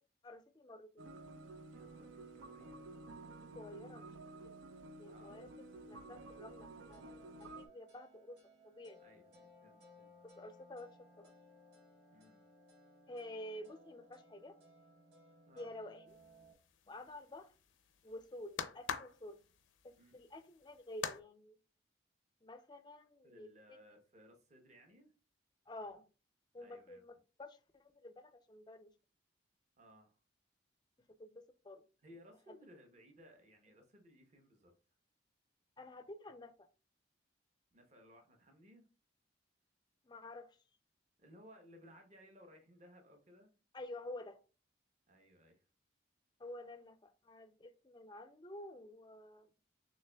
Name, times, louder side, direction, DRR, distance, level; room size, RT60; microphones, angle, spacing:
voice 1, 0.2-1.1 3.5-4.1 4.4-4.6 5.0-5.5 5.9-8.4 8.6-9.0 10.2-11.3 13.1-14.5 15.6-16.2 16.9-17.5 18.0-19.4 19.8-21.6 22.4-23.5 25.7-26.0 26.5-28.9 31.2-31.8 35.8-36.5 40.0-40.6 43.7-44.4 46.4-49.5, left 1 dB, 20° left, 0.4 m, -50 dB
sound 1, 1.0-7.7, right 2 dB, 85° right, 0.5 m, -52 dB
voice 2, 1.7-2.9 5.1-5.4 9.0-10.1 12.1-12.4 15.5-15.7 20.0-20.1 23.2-25.1 26.6-27.2 29.8-30.2 32.0-34.7 37.7-38.9 41.2-43.5 45.1-45.6, equal, 35° right, 0.9 m, -61 dB
sound 2, 6.9-16.5, equal, 60° right, 1.6 m, -62 dB
sound 3, 16.1-21.2, left 7 dB, 80° left, 0.5 m, -46 dB
6.5 x 3.2 x 2.3 m
head